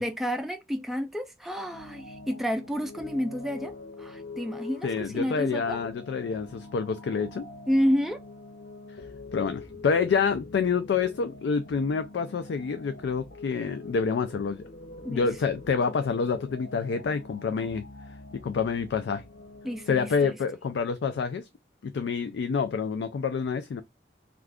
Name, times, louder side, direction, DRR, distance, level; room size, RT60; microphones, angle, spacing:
voice 1, 0.0-3.7 4.0-5.9 7.7-8.2 15.0-15.3 19.6-20.4, equal, ahead, 0.3 m, -30 dB
sound 1, 1.7-20.3, left 3 dB, 60° left, 0.7 m, -44 dB
voice 2, 4.8-7.5 9.3-14.6 15.1-17.8 18.3-19.2 19.9-21.4 21.8-23.8, left 5 dB, 90° left, 0.3 m, -27 dB
2.3 x 2.3 x 3.4 m
head